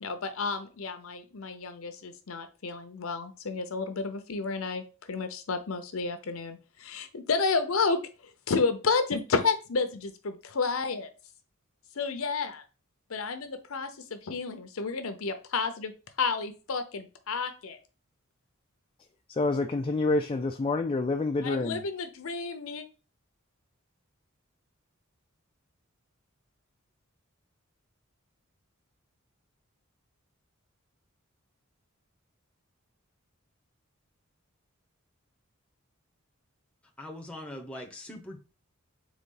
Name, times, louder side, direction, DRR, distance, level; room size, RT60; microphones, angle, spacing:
voice 1, 0.0-4.8 5.1-8.0 8.5-11.1 12.0-12.6 13.1-15.9 16.2-17.8 21.4-22.8, left 4 dB, 75° left, 0.7 m, -31 dB
voice 2, 19.3-21.8, left 3 dB, 25° left, 0.3 m, -27 dB
voice 3, 37.0-38.4, left 1 dB, 5° left, 0.8 m, -41 dB
4.0 x 3.5 x 3.7 m
head